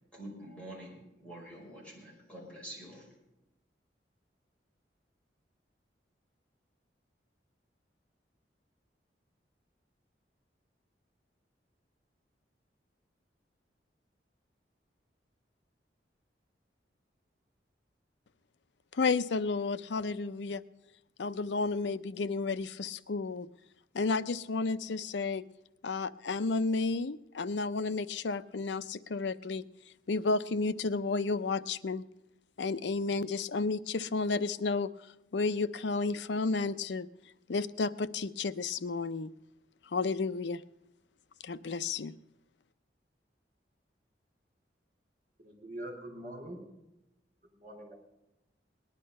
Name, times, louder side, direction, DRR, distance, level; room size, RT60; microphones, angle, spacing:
voice 1, 0.1-3.0, right 1 dB, 5° left, -4 dB, 5.0 m, -47 dB
voice 2, 18.9-20.6 21.2-23.5 23.9-25.4 25.8-29.6 30.1-32.0 32.6-37.1 37.5-39.3 39.9-40.6 41.4-42.1, left 3 dB, 75° left, 15 dB, 0.6 m, -32 dB
voice 3, 45.4-46.7 47.5-48.0, right 1 dB, 45° right, 2 dB, 4.6 m, -43 dB
19.5 x 10.5 x 5.4 m, 0.91 s
head